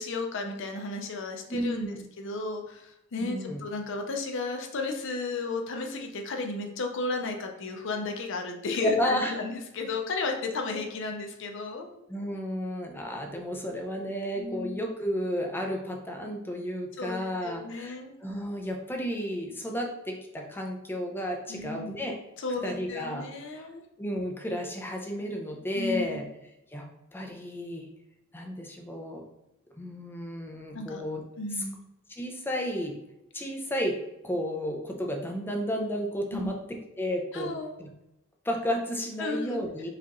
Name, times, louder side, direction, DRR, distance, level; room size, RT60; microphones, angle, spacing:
voice 1, 0.0-12.0 14.4-14.8 17.0-18.1 21.5-21.9 22.4-23.8 25.8-26.2 30.7-31.0 31.4-31.8 36.3-36.5 37.3-37.8 39.2-39.6, left 3 dB, 60° left, 3 dB, 0.6 m, -33 dB
voice 2, 1.5-2.0 3.2-3.6 8.8-9.4 12.1-22.2 22.6-23.3 23.5-23.7 24.0-26.2 26.7-26.9 27.1-27.9 28.3-29.2 29.7-31.2 31.5-31.6 32.2-33.0 33.3-34.0 34.2-36.5 37.0-37.5 37.8-37.9 38.4-39.9, equal, 10° left, 2 dB, 0.4 m, -32 dB
4.8 x 2.4 x 2.9 m, 0.89 s
head